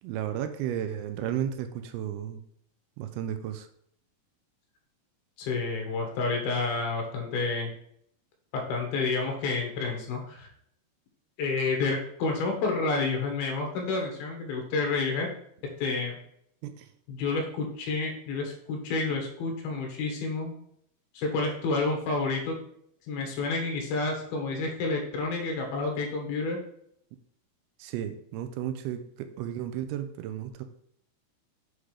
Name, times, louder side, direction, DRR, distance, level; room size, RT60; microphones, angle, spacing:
voice 1, 0.0-2.4 3.0-3.7 16.6-16.9 27.8-30.6, right 10 dB, 80° right, 9 dB, 2.5 m, -33 dB
voice 2, 5.4-7.7 8.5-10.5 11.4-15.3 15.8-16.2 17.1-20.5 21.1-22.6 23.1-26.6, left 3 dB, 70° left, 2 dB, 3.2 m, -29 dB
8.0 x 3.7 x 4.9 m, 0.70 s
omnidirectional pair, 4.6 m